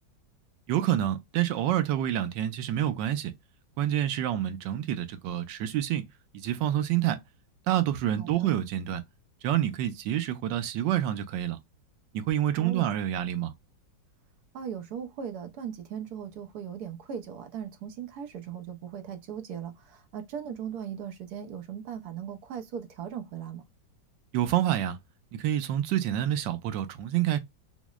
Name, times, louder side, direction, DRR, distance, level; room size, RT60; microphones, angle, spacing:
voice 1, 0.7-3.3 3.8-6.1 6.3-7.2 7.7-9.0 9.4-11.6 12.1-13.5 24.3-25.0 25.3-27.4, right 12 dB, 85° right, 1.3 m, -27 dB
voice 2, 8.2-8.5 12.6-12.9 14.5-23.6, right 8 dB, 70° right, 1.1 m, -38 dB
6.0 x 2.0 x 2.3 m
omnidirectional pair, 1.9 m